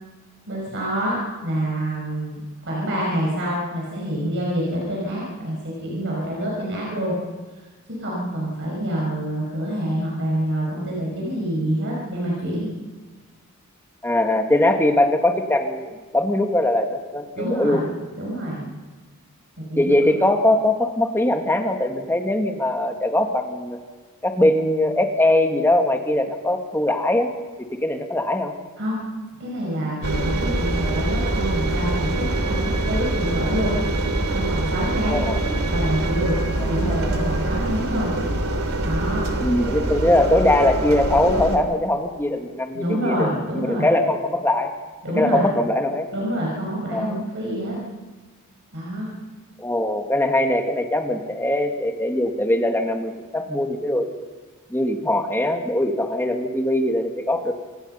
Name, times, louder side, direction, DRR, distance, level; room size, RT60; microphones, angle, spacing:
voice 1, 0.5-7.2 7.9-12.7 17.4-17.8 18.1-18.7 19.6-19.9 28.8-29.0 29.4-33.7 34.3-35.2 35.7-36.4 36.7-38.1 38.8-39.3 42.7-43.9 45.0-45.5 46.1-47.8 48.7-49.1, right 1 dB, 55° right, -4 dB, 5.9 m, -26 dB
voice 2, 14.0-17.8 19.8-23.8 24.2-27.3 27.6-28.5 35.1-35.4 36.7-37.1 39.4-44.7 45.2-46.1 46.9-47.2 49.6-54.1 54.7-57.5, left 1 dB, 10° left, 4 dB, 1.8 m, -21 dB
Engine, 30.0-41.6, right 2 dB, 75° right, 2.6 m, -24 dB
26.5 x 18.5 x 5.6 m, 1.3 s
head